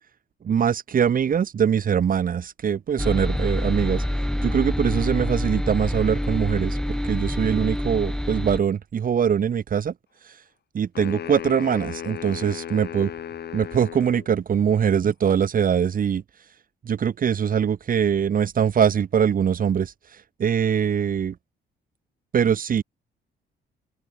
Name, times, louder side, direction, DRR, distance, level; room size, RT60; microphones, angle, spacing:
voice 1, 0.4-4.0 4.4-9.9 10.7-13.1 13.5-16.2 16.8-19.9 20.4-21.3 22.3-22.8, right 8 dB, 45° right, 1.0 m, -22 dB
sound 1, 3.0-8.6, equal, 5° left, 1.5 m, -26 dB
sound 2, 10.9-14.3, left 9 dB, 55° left, 1.7 m, -35 dB
open air
cardioid pair, 90°, 20 cm